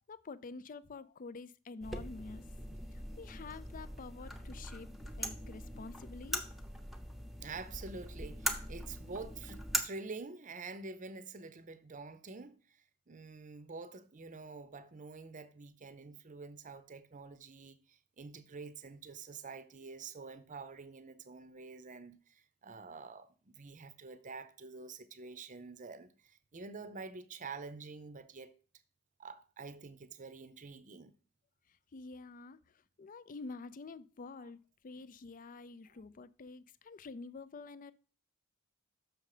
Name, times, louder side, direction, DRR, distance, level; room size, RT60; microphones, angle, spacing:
voice 1, 0.1-2.5 2.9-4.9 5.2-6.5 31.9-37.9, left 3 dB, 40° left, 0.4 m, -48 dB
sound 1, 1.8-9.8, equal, ahead, 0.8 m, -41 dB
voice 2, 7.4-28.5 29.2-31.2 34.4-34.5, right 4 dB, 35° right, 0.7 m, -47 dB
6.4 x 6.4 x 4.9 m
head